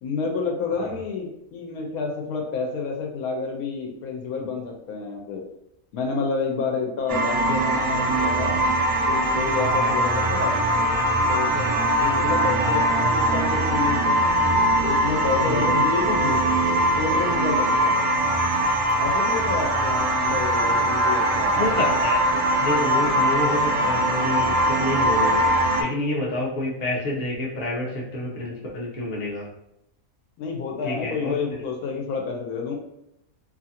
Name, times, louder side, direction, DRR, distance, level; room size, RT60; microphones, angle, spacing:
voice 1, 0.0-5.4 5.9-8.6 9.1-10.6 11.3-11.7 12.0-14.2 14.8-16.4 17.0-17.9 19.0-21.6 30.4-32.7, left 4 dB, 80° left, 1 dB, 1.1 m, -29 dB
sound 1, 7.1-25.8, right 1 dB, 80° right, 1.1 m, -21 dB
voice 2, 21.5-29.5 30.8-31.4, left 1 dB, 40° left, -4 dB, 0.6 m, -28 dB
2.7 x 2.5 x 2.7 m, 0.82 s
omnidirectional pair, 1.6 m